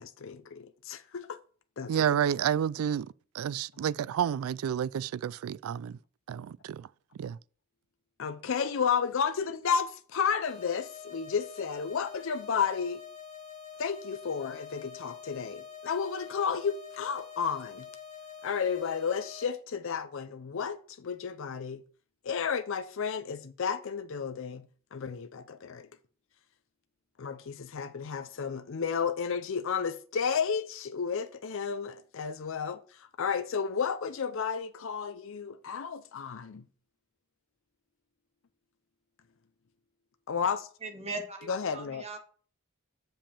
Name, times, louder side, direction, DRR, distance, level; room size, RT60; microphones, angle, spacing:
voice 1, 0.0-1.4 1.8-2.0 8.2-13.0 13.8-17.9 18.4-21.8 22.2-25.9 27.2-36.7 40.3-40.7 41.5-42.1, left 6 dB, 65° left, 0.5 m, -32 dB
voice 2, 1.9-3.1 3.3-6.0 6.3-6.9 7.2-7.4, right 9 dB, 90° right, 0.3 m, -30 dB
sound 1, 10.4-19.4, left 8 dB, 90° left, 2.3 m, -46 dB
voice 3, 40.8-42.2, right 3 dB, 30° right, 1.5 m, -39 dB
7.2 x 5.2 x 4.3 m
head